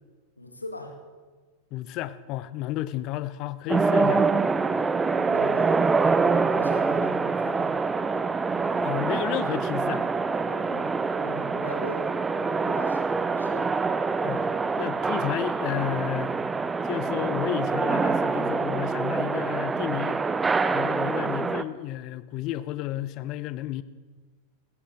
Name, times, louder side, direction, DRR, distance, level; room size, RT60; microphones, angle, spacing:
voice 1, 0.4-1.0 4.7-6.0 6.5-7.8 10.5-13.7 21.1-21.5, equal, 80° left, 4 dB, 1.7 m, -41 dB
voice 2, 1.7-4.3 8.8-10.1 14.2-16.3 16.8-20.2 20.5-23.8, left 14 dB, 40° left, 16 dB, 0.5 m, -32 dB
sound 1, 3.7-21.6, right 4 dB, 15° right, 0.5 m, -25 dB
16.5 x 16.5 x 3.6 m, 1.4 s
figure-of-eight pair, 90°, 0 cm